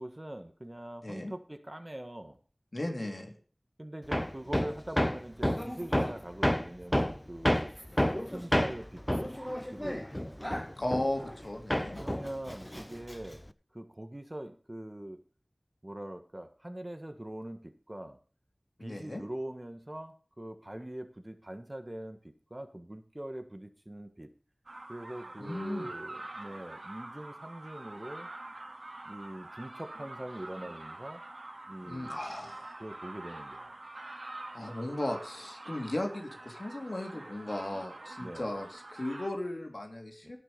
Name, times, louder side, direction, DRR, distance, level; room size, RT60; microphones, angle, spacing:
voice 1, 0.0-2.4 3.8-7.8 8.3-10.7 12.0-13.4 13.7-15.2 15.8-18.2 18.8-24.3 24.9-28.3 29.0-31.2 31.7-32.2 32.8-33.7 38.2-38.6 40.2-40.3, right 1 dB, 35° right, 8 dB, 1.6 m, -43 dB
voice 2, 1.0-1.3 2.7-3.3 10.8-12.0 18.8-19.2 25.4-25.9 31.8-32.7 34.3-40.4, left 1 dB, 60° left, 2 dB, 3.3 m, -36 dB
Hammer, 4.1-11.4 11.7-13.5, equal, 15° left, 0.7 m, -30 dB
sound 1, 24.7-39.3, right 2 dB, 85° right, 2.2 m, -46 dB
17.5 x 6.1 x 5.3 m, 0.41 s
wide cardioid pair, 45°, 0 cm